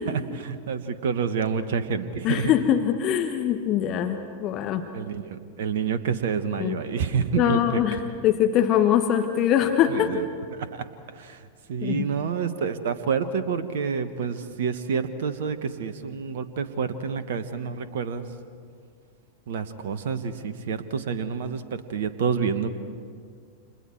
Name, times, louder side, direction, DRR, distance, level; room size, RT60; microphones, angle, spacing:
voice 1, 0.0-2.5 4.9-8.0 9.8-10.2 10.5-10.8 11.1-11.4 11.7-18.3 19.5-22.7, right 6 dB, 55° right, 11 dB, 1.3 m, -28 dB
voice 2, 2.2-4.9 6.6-6.8 7.4-10.1 11.8-12.1, left 10 dB, 35° left, 6 dB, 1.4 m, -23 dB
30.0 x 28.0 x 4.6 m, 2.1 s
figure-of-eight pair, 90°, 0 cm